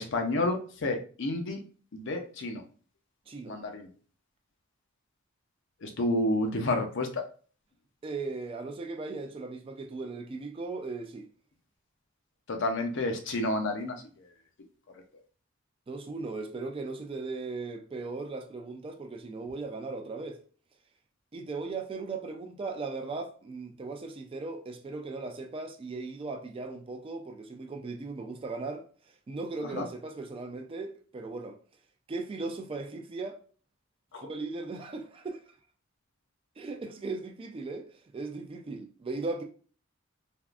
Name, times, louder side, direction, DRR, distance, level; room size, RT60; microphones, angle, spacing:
voice 1, 0.0-1.6 1.9-2.6 3.5-3.9 5.8-7.2 12.5-14.0 29.7-29.9 34.1-34.3, left 2 dB, 60° left, 0.5 m, -30 dB
voice 2, 3.3-3.6 8.0-11.2 15.9-20.4 21.3-28.8 29.3-31.6 32.1-33.4 34.2-35.4 36.6-37.9 38.1-39.4, right 3 dB, 25° right, 0.3 m, -37 dB
3.5 x 2.4 x 2.3 m
head